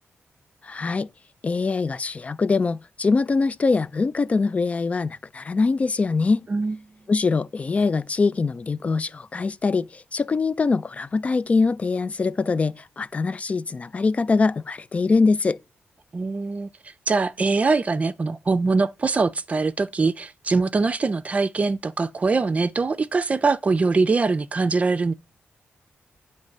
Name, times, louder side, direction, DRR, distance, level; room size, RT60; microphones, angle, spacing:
voice 1, 0.6-1.1 1.4-6.5 7.1-15.6, left 4 dB, 30° left, 0.3 m, -23 dB
voice 2, 16.1-16.7 17.1-25.1, right 4 dB, 30° right, 0.5 m, -22 dB
9.4 x 3.2 x 6.4 m
wide cardioid pair, 130°, 4 cm